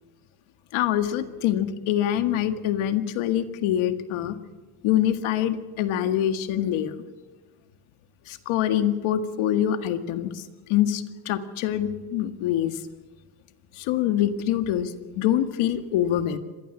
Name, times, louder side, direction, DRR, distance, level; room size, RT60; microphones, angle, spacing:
voice 1, 0.7-4.4 4.8-6.9 8.3-10.4 10.7-12.8 13.7-16.4, left 11 dB, 80° left, 9 dB, 2.0 m, -25 dB
25.5 x 19.0 x 7.3 m, 1.2 s
cardioid pair, 115°, 49 cm